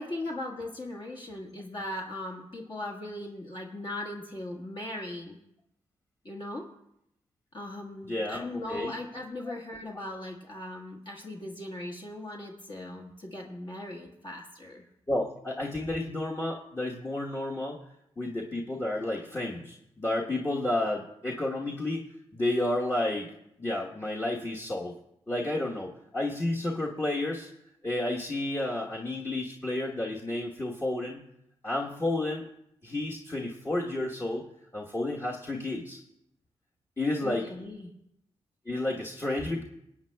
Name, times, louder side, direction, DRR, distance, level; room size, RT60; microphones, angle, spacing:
voice 1, 0.0-5.4 6.2-6.6 7.5-14.8 37.2-37.9, left 1 dB, 45° left, -1 dB, 1.5 m, -38 dB
voice 2, 8.1-8.9 15.1-17.8 18.2-23.3 23.6-24.9 25.3-27.5 27.8-31.3 31.6-32.5 32.8-34.4 34.7-36.0 37.0-37.5 38.7-39.6, left 1 dB, 20° left, -3 dB, 1.2 m, -31 dB
23.0 x 8.5 x 2.3 m, 0.79 s
cardioid pair, 60°, 11 cm